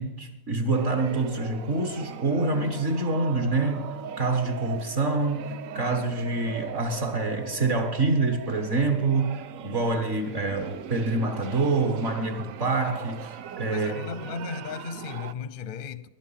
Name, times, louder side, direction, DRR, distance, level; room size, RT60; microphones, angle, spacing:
voice 1, 0.0-14.0, right 3 dB, 50° right, 1.6 m, -26 dB
sound 1, 0.7-15.3, right 9 dB, 65° right, 1.0 m, -40 dB
voice 2, 13.7-16.1, left 6 dB, 50° left, 0.6 m, -36 dB
19.0 x 11.0 x 5.8 m
omnidirectional pair, 1.6 m